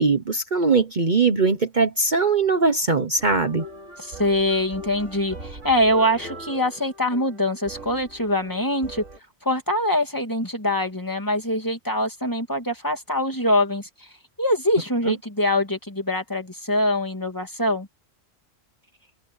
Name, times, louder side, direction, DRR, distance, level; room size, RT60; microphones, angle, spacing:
voice 1, 0.0-3.6 15.1-15.2, right 4 dB, 40° right, 1.2 m, -21 dB
sound 1, 3.2-9.2, right 1 dB, 85° right, 3.5 m, -41 dB
voice 2, 4.0-9.0 9.4-13.9 14.4-17.9, left 1 dB, 15° left, 2.7 m, -23 dB
omnidirectional pair, 1.2 m